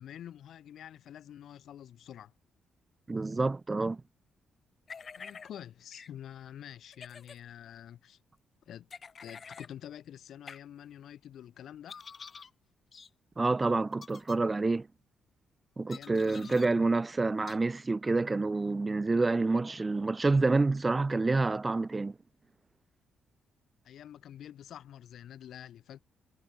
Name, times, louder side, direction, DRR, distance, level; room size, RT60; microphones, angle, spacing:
voice 1, 0.0-2.3 5.2-8.2 8.7-8.9 9.2-12.0 15.9-16.8 23.8-26.0, left 10 dB, 70° left, 7.5 m, -47 dB
voice 2, 3.1-4.0 13.4-14.9 15.8-22.1, right 3 dB, 25° right, 0.4 m, -28 dB
sound 1, 4.9-5.5 5.9-6.1 6.9-7.4 8.9-9.7 10.5-10.6 11.9-12.5 12.9-13.1 13.9-14.4 15.9-16.7 17.5-17.6, left 5 dB, 40° left, 6.2 m, -47 dB
cardioid pair, 90°, 0 cm